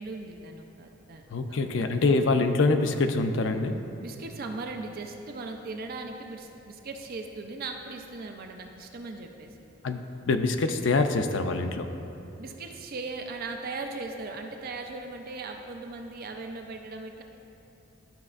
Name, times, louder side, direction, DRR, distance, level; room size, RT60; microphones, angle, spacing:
voice 1, 0.0-1.9 4.0-9.6 12.4-17.2, right 3 dB, 50° right, 4 dB, 0.5 m, -38 dB
voice 2, 1.3-3.8 9.8-10.0 10.3-11.9, left 3 dB, 70° left, 7 dB, 0.5 m, -25 dB
12.0 x 5.9 x 2.5 m, 3.0 s
head